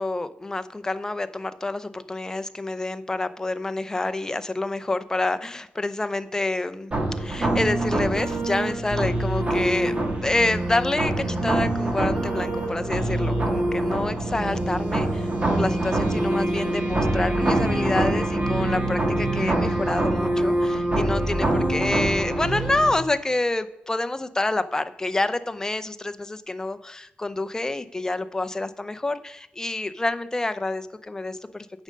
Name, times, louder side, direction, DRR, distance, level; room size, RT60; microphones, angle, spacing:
voice 1, 0.0-6.9 7.2-9.9 10.2-31.8, left 2 dB, 15° left, 12 dB, 0.5 m, -28 dB
sound 1, 6.9-22.9, right 1 dB, 30° right, 1.6 m, -24 dB
9.0 x 5.3 x 6.4 m, 0.91 s
wide cardioid pair, 110°, 4 cm